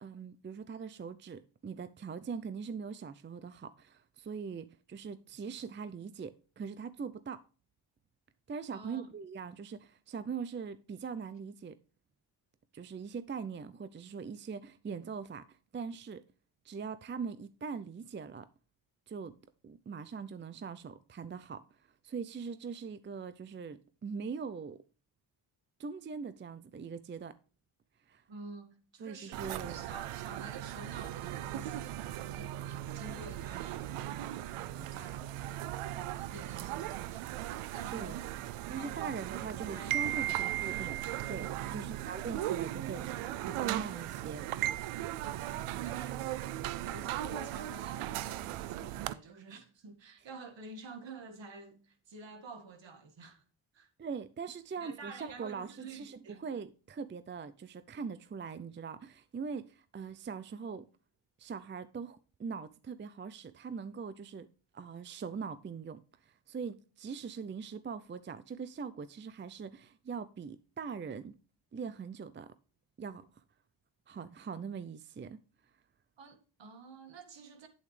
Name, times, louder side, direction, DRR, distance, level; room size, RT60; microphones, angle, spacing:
voice 1, 0.0-7.4 8.5-11.8 12.7-16.2 16.6-18.5 19.1-19.4 19.6-21.6 22.0-24.8 25.8-27.4 28.1-28.2 29.0-29.8 37.9-38.2 38.7-41.0 41.3-43.1 43.5-44.5 54.0-60.9 61.4-64.5 64.7-71.3 71.7-72.5 73.0-73.3 74.1-75.4, right 5 dB, 25° right, 0.5 m, -42 dB
voice 2, 8.7-9.1 28.3-35.3 36.2-37.4 37.7-38.2 38.7-40.4 42.9-43.4 45.8-46.4 46.8-53.4 53.7-53.9 54.8-56.4 76.2-77.7, right 3 dB, 60° right, 1.9 m, -49 dB
sound 1, 29.3-49.1, right 13 dB, 90° right, 0.6 m, -37 dB
8.7 x 8.1 x 3.3 m
cardioid pair, 65°, 49 cm